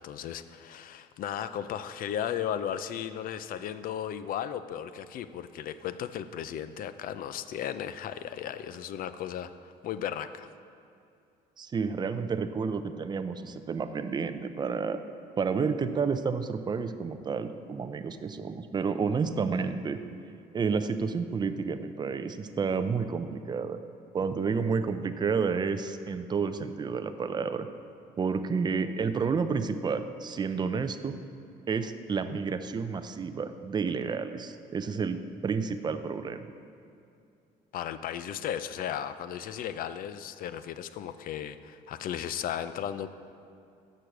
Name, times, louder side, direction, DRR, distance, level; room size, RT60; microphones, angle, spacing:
voice 1, 0.0-10.5 37.7-43.1, left 9 dB, 60° left, 12 dB, 0.4 m, -35 dB
voice 2, 11.6-15.0 15.4-20.0 20.5-23.8 24.1-27.7 28.2-31.1 31.7-36.5, right 5 dB, 25° right, 9 dB, 0.4 m, -30 dB
6.7 x 6.2 x 5.8 m, 2.5 s
cardioid pair, 110°, 17 cm